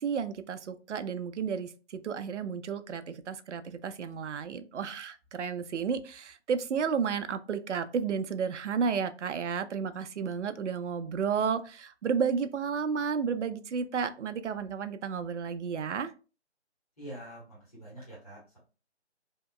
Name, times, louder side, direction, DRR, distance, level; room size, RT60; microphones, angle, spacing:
voice 1, 0.0-16.1, right 6 dB, 85° right, 10 dB, 0.5 m, -32 dB
voice 2, 17.0-18.6, right 1 dB, 30° left, -8 dB, 1.5 m, -45 dB
2.8 x 2.7 x 2.2 m, 0.35 s
hypercardioid pair, 180°, 34 cm